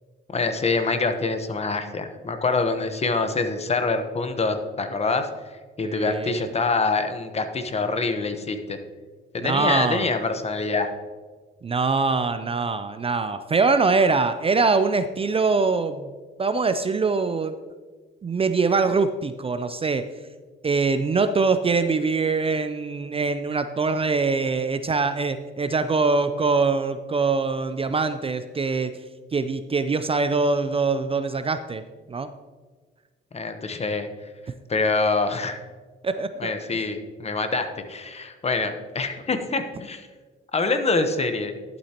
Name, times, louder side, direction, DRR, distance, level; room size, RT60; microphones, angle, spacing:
voice 1, 0.3-8.8 9.3-10.9 33.3-34.3 34.7-35.6 36.4-40.1 40.5-41.5, left 3 dB, 30° left, 8 dB, 1.0 m, -25 dB
voice 2, 5.8-6.4 9.4-10.1 11.6-16.1 16.4-17.6 18.2-20.1 20.6-28.9 29.3-31.8 32.1-32.3 36.0-36.8, right 4 dB, 30° right, 10 dB, 0.5 m, -23 dB
12.0 x 8.2 x 2.9 m, 1.4 s
cardioid pair, 90°, 20 cm